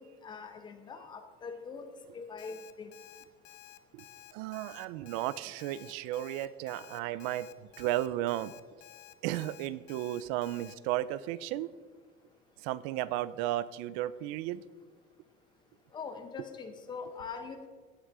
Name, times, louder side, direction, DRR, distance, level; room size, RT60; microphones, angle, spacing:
voice 1, 0.0-1.9 2.1-2.9 15.9-17.7, left 5 dB, 20° left, 7 dB, 0.9 m, -43 dB
Alarm, 2.4-10.7, left 14 dB, 70° left, 0.8 m, -53 dB
voice 2, 4.3-7.5 7.8-8.5 9.2-11.7 12.6-14.6, right 14 dB, 75° right, 18 dB, 0.5 m, -34 dB
17.0 x 6.4 x 4.8 m, 1.5 s
cardioid pair, 175°, 21 cm